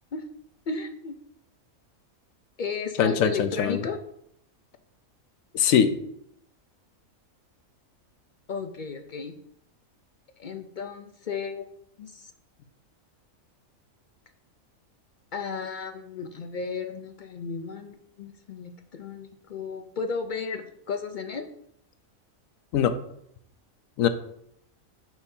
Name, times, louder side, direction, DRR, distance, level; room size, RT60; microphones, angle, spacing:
voice 1, 0.7-1.2 2.6-4.0 8.5-9.3 10.4-11.6 12.0-12.3 15.3-21.5, left 5 dB, 65° left, 6 dB, 0.4 m, -34 dB
voice 2, 3.0-3.8 5.5-5.9 22.7-23.0 24.0-24.1, left 8 dB, 80° left, 10 dB, 1.0 m, -22 dB
6.9 x 6.0 x 2.7 m, 0.72 s
omnidirectional pair, 1.4 m